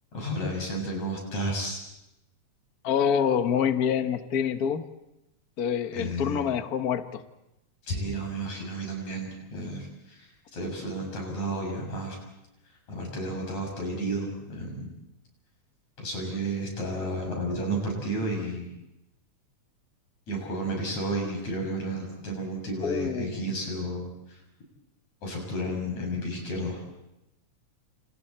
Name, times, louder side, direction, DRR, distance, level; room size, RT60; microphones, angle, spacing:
voice 1, 0.1-1.8 5.9-6.5 7.9-12.2 12.9-14.9 16.0-18.7 20.3-24.4 25.2-26.8, right 1 dB, 75° left, 0 dB, 8.2 m, -32 dB
voice 2, 2.8-4.8 5.6-7.2 22.8-23.4, left 7 dB, 55° left, 8 dB, 1.0 m, -26 dB
29.0 x 28.5 x 4.4 m, 0.92 s
omnidirectional pair, 3.3 m